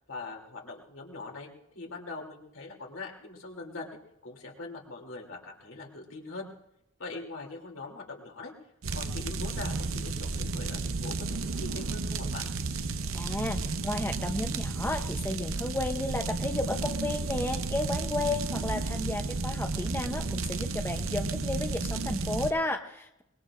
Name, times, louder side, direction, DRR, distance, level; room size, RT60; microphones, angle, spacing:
voice 1, 0.1-1.5 1.7-4.0 4.2-6.5 7.0-8.5 8.9-12.5, left 3 dB, 80° left, -1 dB, 3.0 m, -42 dB
sound 1, 8.8-22.5, right 3 dB, 90° right, 0.8 m, -32 dB
voice 2, 13.1-23.2, left 2 dB, 10° left, 5 dB, 0.7 m, -33 dB
23.5 x 21.5 x 2.5 m, 0.85 s
head